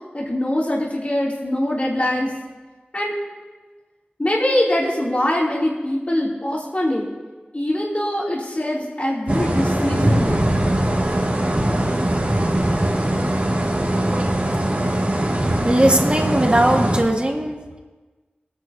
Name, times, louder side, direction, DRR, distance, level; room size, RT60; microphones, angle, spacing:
voice 1, 0.1-2.3 2.9-3.2 4.2-7.1 7.5-10.6, left 1 dB, 45° left, -5 dB, 2.9 m, -23 dB
sound 1, 9.3-17.0, right 1 dB, 55° right, 2.3 m, -21 dB
voice 2, 15.4-17.8, right 1 dB, 35° right, 1 dB, 1.8 m, -19 dB
24.0 x 9.5 x 2.8 m, 1.3 s
wide cardioid pair, 50°, 3 cm